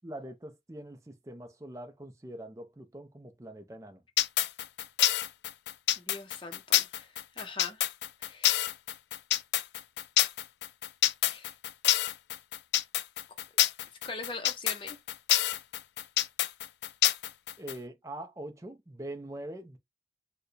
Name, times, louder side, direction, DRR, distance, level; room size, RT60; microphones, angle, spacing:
voice 1, 0.0-4.0 17.6-19.8, right 1 dB, 15° right, 0.5 m, -43 dB
sound 1, 4.2-17.7, left 13 dB, 75° left, 0.3 m, -27 dB
voice 2, 6.0-7.1 7.4-7.9 8.2-8.6 11.3-11.5 14.0-15.0, left 3 dB, 30° left, 0.7 m, -41 dB
4.5 x 2.2 x 3.2 m
head